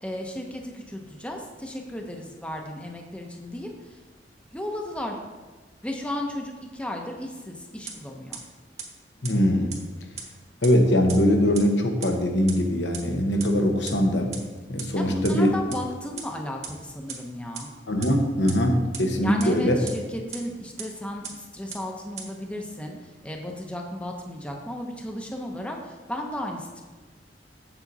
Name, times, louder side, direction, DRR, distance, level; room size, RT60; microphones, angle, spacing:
voice 1, 0.0-4.0 4.5-5.2 5.8-8.4 15.0-17.7 19.2-26.8, left 1 dB, 5° left, 1 dB, 0.8 m, -34 dB
sound 1, 7.9-8.0 8.3-8.4 8.8-8.9 9.2-9.3 9.7-9.8 10.2-10.3 10.6-10.7 11.1-11.2 11.5-11.6 12.0-12.1 12.5-12.6 12.9-13.0 13.4-13.5 13.9-14.0 14.3-14.4 14.8-14.9 15.2-15.3 15.7-15.8 16.2-16.3 16.6-16.7 17.1-17.2 17.5-17.6 18.0-18.1 18.5-18.6 18.9-19.0 19.4-19.5 19.9-20.0 20.3-20.4 20.8-20.9 21.2-21.3 21.7-21.8 22.2-22.3, right 7 dB, 40° right, 1.4 m, -35 dB
voice 2, 9.2-9.7 10.6-14.4 14.7-15.5 17.9-19.8, equal, 80° left, 3 dB, 1.1 m, -22 dB
7.7 x 7.3 x 4.1 m, 1.3 s
head